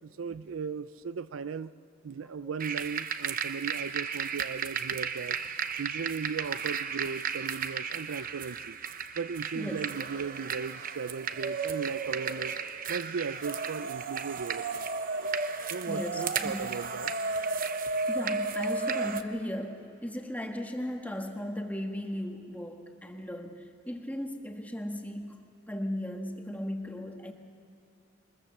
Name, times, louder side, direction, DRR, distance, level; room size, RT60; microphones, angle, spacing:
voice 1, 0.0-1.7 2.0-5.4 5.8-8.8 9.2-12.5 12.9-14.9 15.2-15.4 15.7-17.1, right 5 dB, 90° right, 15 dB, 0.5 m, -37 dB
sound 1, 2.6-19.2, right 5 dB, 45° right, 0.9 m, -34 dB
voice 2, 9.5-9.9 15.9-16.7 18.1-27.3, left 1 dB, 10° left, 3 dB, 1.6 m, -37 dB
23.0 x 21.0 x 7.1 m, 2.7 s
head